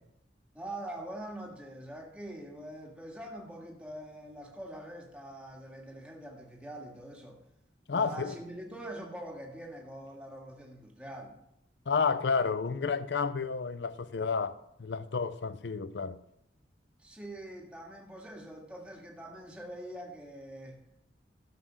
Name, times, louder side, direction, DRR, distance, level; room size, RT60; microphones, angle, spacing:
voice 1, 0.5-7.4 7.9-11.4 17.0-20.8, right 1 dB, 5° right, 1.8 m, -44 dB
voice 2, 7.9-8.3 11.9-16.2, left 5 dB, 70° left, 0.5 m, -31 dB
13.0 x 6.3 x 6.3 m
head